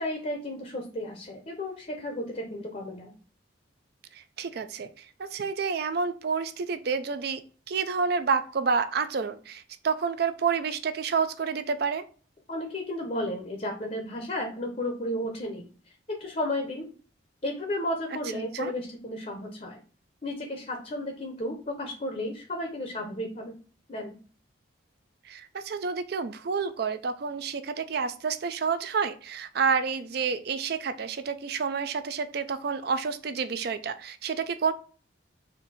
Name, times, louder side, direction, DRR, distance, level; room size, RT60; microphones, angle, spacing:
voice 1, 0.0-3.1 12.5-16.9 17.4-19.8 20.2-23.6 23.9-24.2, left 1 dB, 40° left, 3 dB, 0.7 m, -33 dB
voice 2, 4.1-12.0 18.5-18.7 25.2-34.7, right 5 dB, 55° right, 12 dB, 0.4 m, -29 dB
4.4 x 2.6 x 4.1 m, 0.39 s
head